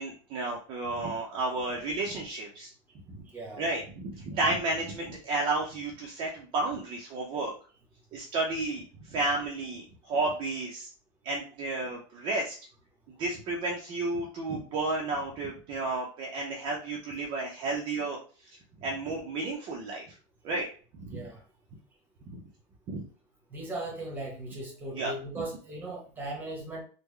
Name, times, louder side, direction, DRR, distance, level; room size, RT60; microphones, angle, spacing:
voice 1, 0.0-2.7 3.1-3.2 3.6-7.5 8.1-10.9 11.2-12.5 13.2-18.2 18.8-20.1 20.4-20.7 20.9-21.2 22.3-22.4 22.9-23.0 24.9-25.1, right 2 dB, 30° right, 0.6 m, -32 dB
voice 2, 3.3-3.6 21.1-21.4 23.5-26.8, right 2 dB, 10° right, 0.9 m, -38 dB
3.6 x 2.1 x 3.2 m
supercardioid pair, 165°, 16 cm